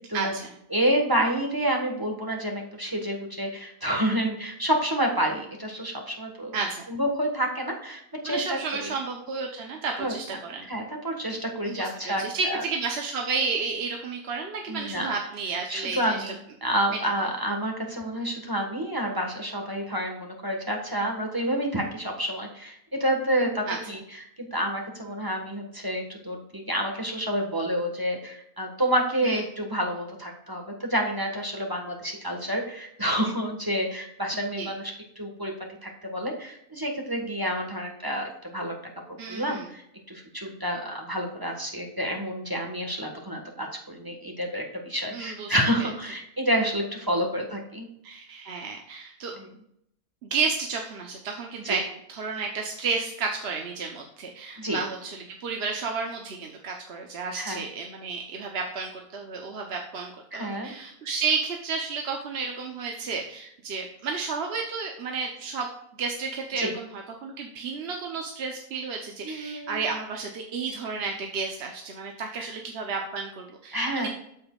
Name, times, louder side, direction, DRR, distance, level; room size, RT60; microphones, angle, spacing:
voice 1, 0.1-0.5 6.5-6.9 8.2-10.7 11.7-16.2 23.7-23.8 29.2-29.4 34.5-34.7 39.2-39.7 45.1-45.5 45.8-45.9 48.0-49.3 50.2-51.8 52.1-65.7 66.0-74.1, right 4 dB, 50° right, 2 dB, 1.0 m, -32 dB
voice 2, 0.7-6.5 6.9-8.9 10.0-10.1 10.6-12.6 14.7-15.1 15.7-35.5 35.8-38.7 39.3-47.9 49.4-49.5 51.6-51.8 54.6-54.8 57.3-57.6 60.3-60.7 66.6-66.7 69.2-69.8 72.4-72.5 73.7-74.1, equal, 15° right, 1 dB, 1.3 m, -29 dB
8.7 x 7.0 x 2.3 m, 0.75 s
omnidirectional pair, 1.6 m